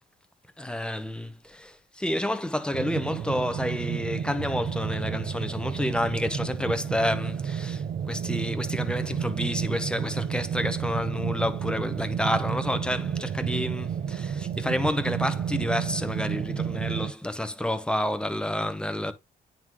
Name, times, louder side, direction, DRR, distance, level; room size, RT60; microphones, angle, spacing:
voice 1, 0.6-19.1, left 1 dB, 5° left, 0.9 m, -29 dB
sound 1, 2.7-17.1, right 8 dB, 40° right, 0.5 m, -31 dB
9.3 x 3.8 x 3.0 m
cardioid pair, 90°, 20 cm